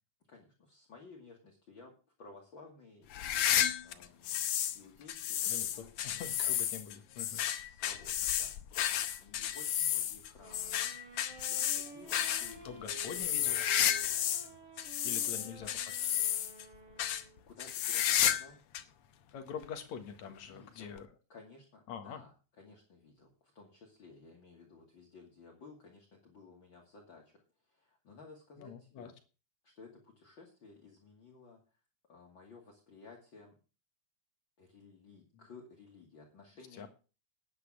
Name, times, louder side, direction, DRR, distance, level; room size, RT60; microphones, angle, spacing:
voice 1, 0.3-5.9 7.6-8.9 9.2-10.8 11.5-13.5 15.2-15.3 17.5-18.6 20.3-20.9 21.3-27.4 27.7-29.1 29.6-31.6 32.1-33.5 34.6-36.9, left 4 dB, 40° left, 0 dB, 2.8 m, -56 dB
sound 1, 3.1-4.8 5.1-14.5 14.8-16.6 17.0-17.2 17.6-18.5 18.7-18.8 19.6-19.7 21.0-21.1, left 10 dB, 85° left, 1.2 m, -32 dB
voice 2, 5.4-7.4 12.6-13.7 15.0-16.0 19.3-21.1 21.9-22.2 28.6-29.1 36.8-36.9, left 7 dB, 60° left, 7 dB, 2.6 m, -45 dB
sound 2, 10.4-17.5, right 3 dB, 70° right, 5.2 m, -52 dB
10.0 x 9.2 x 6.4 m, 0.34 s
omnidirectional pair, 3.8 m